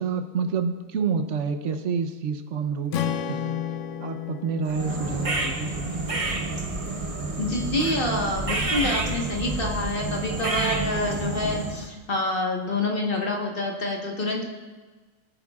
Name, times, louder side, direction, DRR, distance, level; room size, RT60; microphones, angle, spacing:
voice 1, 0.0-3.6 4.0-5.9, right 6 dB, 60° right, 7 dB, 1.0 m, -28 dB
Strum, 2.9-7.2, left 9 dB, 65° left, 0.8 m, -33 dB
sound 1, 4.7-11.9, right 2 dB, 25° right, 0.9 m, -29 dB
voice 2, 7.4-14.5, left 2 dB, 40° left, 1 dB, 1.4 m, -27 dB
18.0 x 8.5 x 2.4 m, 1.3 s
omnidirectional pair, 1.6 m